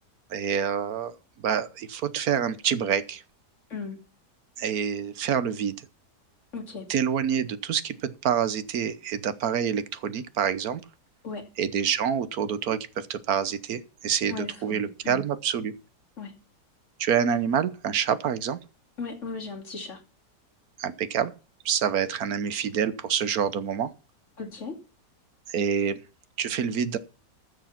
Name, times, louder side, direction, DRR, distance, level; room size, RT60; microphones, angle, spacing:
voice 1, 0.3-3.2 4.6-5.7 6.9-10.8 11.6-15.7 17.0-18.6 20.8-21.3 21.6-23.9 25.5-26.0 26.4-27.0, right 8 dB, 65° right, 1.3 m, -27 dB
voice 2, 6.5-6.9 11.2-11.4 14.3-15.2 16.2-16.3 19.0-20.0 24.4-24.7, left 4 dB, 45° left, 2.9 m, -36 dB
14.0 x 6.6 x 5.8 m
omnidirectional pair, 1.8 m